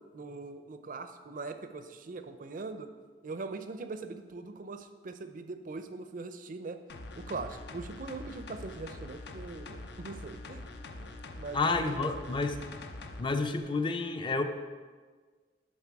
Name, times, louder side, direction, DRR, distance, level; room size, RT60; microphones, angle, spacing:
voice 1, 0.1-2.9 3.2-6.8 7.2-10.6 11.0-11.1 11.4-12.3, right 3 dB, 45° right, 9 dB, 0.5 m, -41 dB
sound 1, 6.9-13.2 13.6-13.7, left 2 dB, 65° left, 0.6 m, -44 dB
voice 2, 11.5-12.6 13.2-14.4, left 3 dB, 25° left, 7 dB, 0.5 m, -30 dB
10.5 x 4.0 x 4.7 m, 1.5 s
head